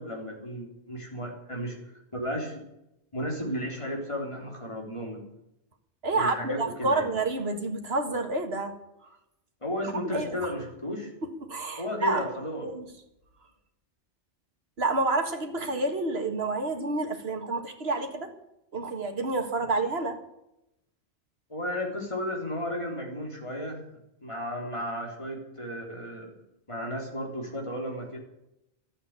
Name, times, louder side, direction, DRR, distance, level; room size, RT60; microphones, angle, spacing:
voice 1, 0.0-1.8 2.1-2.6 3.1-5.2 6.1-7.1 9.6-11.1 11.8-12.7 21.5-23.8 24.2-26.3 26.7-28.2, equal, 25° left, 0 dB, 3.8 m, -34 dB
voice 2, 6.0-8.8 9.8-10.4 11.5-12.3 12.6-12.9 14.8-18.3 18.7-20.2, right 2 dB, 60° right, 5 dB, 2.0 m, -29 dB
12.5 x 8.8 x 9.1 m, 0.86 s
omnidirectional pair, 1.2 m